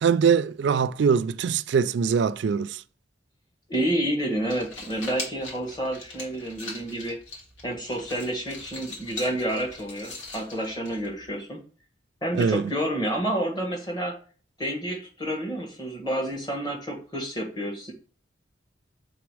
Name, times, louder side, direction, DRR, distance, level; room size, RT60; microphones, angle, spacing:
voice 1, 0.0-2.8 12.3-12.6, right 6 dB, 70° right, 0.3 m, -22 dB
voice 2, 3.7-7.2 7.6-11.6 12.2-14.1 14.6-17.9, right 1 dB, 20° left, 1.4 m, -29 dB
sound 1, 4.3-11.4, left 3 dB, 85° left, 2.1 m, -41 dB
6.1 x 3.7 x 4.8 m
head